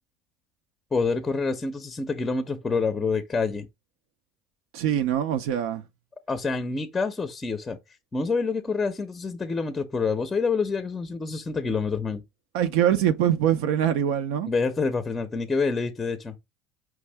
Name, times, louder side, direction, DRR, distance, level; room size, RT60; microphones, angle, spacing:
voice 1, 0.9-3.7 6.3-7.8 8.1-12.2 14.5-16.4, left 4 dB, 20° left, 0.5 m, -27 dB
voice 2, 4.7-5.8 12.5-14.5, right 10 dB, 75° right, 0.4 m, -23 dB
4.7 x 2.6 x 3.3 m
supercardioid pair, 95°, 0 cm